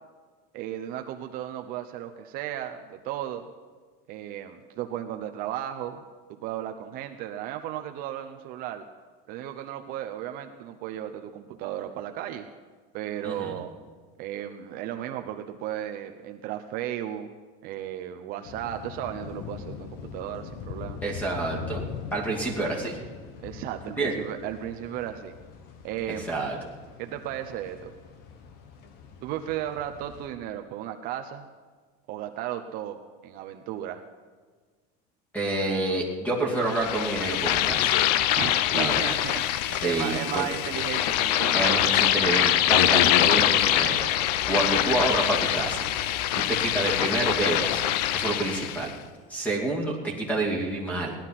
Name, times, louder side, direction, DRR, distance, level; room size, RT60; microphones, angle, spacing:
voice 1, 0.5-3.5 4.1-6.0 6.3-8.8 9.3-12.5 12.9-13.7 14.2-17.3 17.6-21.0 23.4-25.3 25.8-26.4 27.0-27.9 29.2-31.5 32.1-34.0 38.3-42.2, right 11 dB, 45° right, 6 dB, 0.8 m, -35 dB
voice 2, 13.2-13.6 21.0-21.8 22.1-23.0 24.0-24.1 26.2-26.6 35.3-38.0 38.7-39.1 39.8-40.5 41.5-44.0 44.5-47.8 48.1-48.9 49.3-51.2, right 2 dB, 10° left, 0 dB, 2.5 m, -28 dB
sound 1, 18.4-30.3, left 6 dB, 50° left, 1.4 m, -42 dB
sound 2, 36.7-48.9, left 12 dB, 80° left, 0.7 m, -24 dB
17.5 x 12.0 x 5.9 m, 1.5 s
cardioid pair, 165°, 20 cm